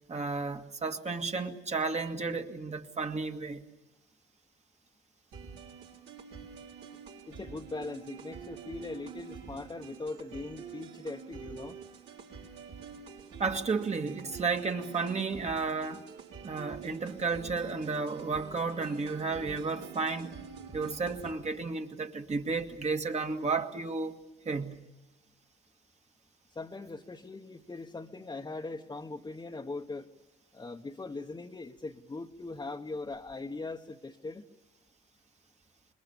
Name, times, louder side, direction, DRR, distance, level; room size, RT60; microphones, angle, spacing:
voice 1, 0.1-3.6 13.4-16.1 16.4-20.3 20.7-24.2 24.5-24.8, right 4 dB, 35° right, 2.0 m, -32 dB
sound 1, 5.3-21.3, right 6 dB, 80° right, 5.9 m, -47 dB
voice 2, 7.2-11.8 26.5-30.1 30.5-34.5, left 3 dB, 20° left, 1.2 m, -40 dB
25.5 x 22.0 x 7.1 m
cardioid pair, 90°, 20 cm